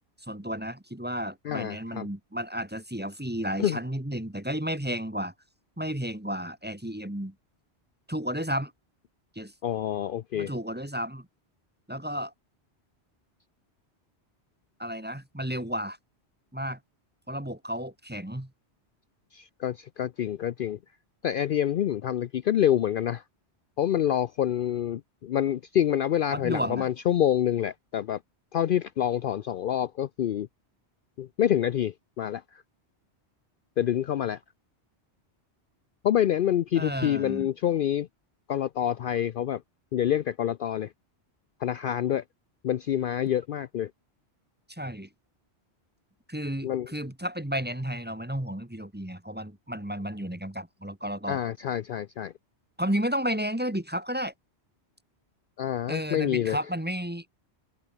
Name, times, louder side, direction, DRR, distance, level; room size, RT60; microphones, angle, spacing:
voice 1, 0.2-5.3 5.8-7.3 8.1-8.7 9.3-9.5 10.3-11.3 11.9-12.3 14.8-16.0 16.5-16.8 17.3-18.5 26.3-26.9 36.7-37.5 44.7-45.1 46.3-51.4 52.8-54.3 55.9-57.3, equal, 10° right, 1.4 m, -32 dB
voice 2, 1.4-2.1 3.6-3.8 9.6-10.5 19.3-20.8 21.2-23.2 23.8-28.2 28.5-30.5 31.2-32.6 33.8-34.4 36.0-38.1 38.5-39.6 39.9-40.9 41.6-42.2 42.6-43.9 46.6-46.9 51.3-52.3 55.6-56.6, left 10 dB, 60° left, 0.6 m, -27 dB
omnidirectional pair, 1.1 m